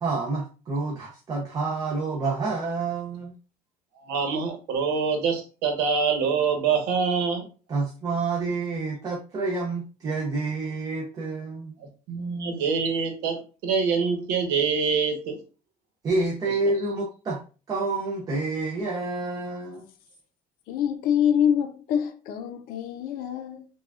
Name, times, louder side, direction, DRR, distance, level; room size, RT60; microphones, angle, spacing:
voice 1, 0.0-3.3 7.7-11.7 16.0-17.4 17.7-19.9, right 3 dB, 25° right, 0.5 m, -28 dB
voice 2, 4.0-7.5 11.8-15.4 16.5-16.6, right 5 dB, 90° right, 1.1 m, -25 dB
voice 3, 20.7-23.7, left 9 dB, 60° left, 0.6 m, -25 dB
5.5 x 2.3 x 2.4 m
cardioid pair, 165°, 17 cm